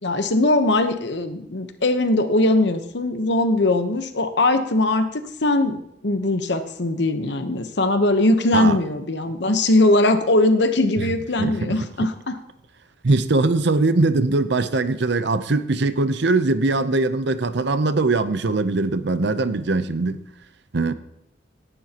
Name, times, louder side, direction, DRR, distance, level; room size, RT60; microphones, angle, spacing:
voice 1, 0.0-12.4, left 2 dB, 65° left, 8 dB, 1.0 m, -20 dB
voice 2, 11.4-11.7 13.0-20.2 20.7-20.9, right 3 dB, 65° right, 12 dB, 0.7 m, -21 dB
17.5 x 11.0 x 2.9 m, 0.78 s
head